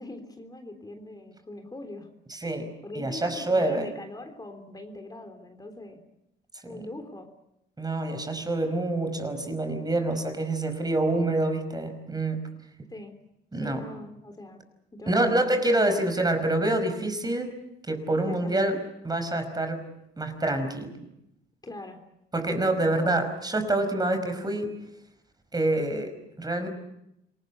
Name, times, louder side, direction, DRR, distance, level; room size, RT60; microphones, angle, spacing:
voice 1, 0.0-2.1 2.8-6.0 6.6-7.3 12.9-13.1 13.5-14.6 14.9-15.4 15.8-16.0 18.2-18.8 21.6-22.0 22.9-23.2, left 2 dB, 20° left, 5 dB, 3.6 m, -42 dB
voice 2, 2.3-3.9 6.7-6.9 7.8-12.5 13.5-13.8 15.1-17.5 17.9-18.8 19.0-19.9 20.2-21.0 22.3-24.7 25.5-26.7, right 2 dB, 20° right, 7 dB, 5.2 m, -26 dB
27.0 x 19.0 x 8.2 m, 0.83 s
cardioid pair, 90°, 20 cm